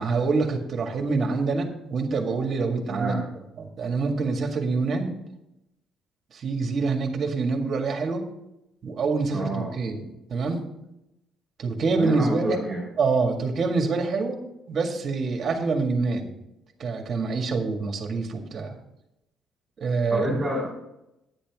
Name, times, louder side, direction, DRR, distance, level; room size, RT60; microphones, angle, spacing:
voice 1, 0.0-3.2 3.6-5.1 6.3-8.3 8.8-10.6 11.6-12.6 13.0-14.4 14.7-16.3 16.8-18.8 19.8-20.4, right 4 dB, 40° right, 3 dB, 1.9 m, -26 dB
voice 2, 2.9-3.2 9.3-9.7 11.9-12.9 20.1-20.7, right 1 dB, 5° right, -7 dB, 3.9 m, -28 dB
10.0 x 10.0 x 3.7 m, 0.86 s
cardioid pair, 160°, 0 cm